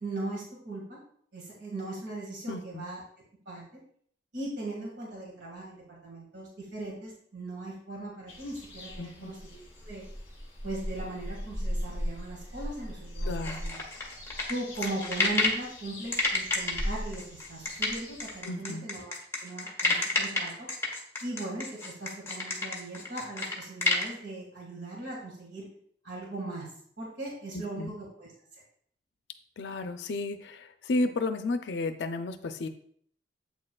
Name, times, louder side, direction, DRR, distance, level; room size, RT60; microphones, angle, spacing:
voice 1, 0.0-1.0 1.3-3.0 3.5-3.6 4.3-10.1 10.6-13.8 14.5-19.1 19.4-20.7 21.2-25.7 26.0-26.7 27.0-28.3, right 2 dB, 90° right, -3 dB, 1.8 m, -39 dB
voice 2, 2.5-2.9 9.0-9.3 13.3-13.6 18.4-18.8 27.5-27.9 29.6-32.7, left 2 dB, 85° left, 8 dB, 0.5 m, -33 dB
sound 1, 8.3-18.4, equal, 35° left, 2.1 m, -38 dB
sound 2, 13.4-15.6 16.1-24.1, left 3 dB, 15° left, 1.4 m, -29 dB
8.1 x 6.5 x 2.3 m, 0.62 s
head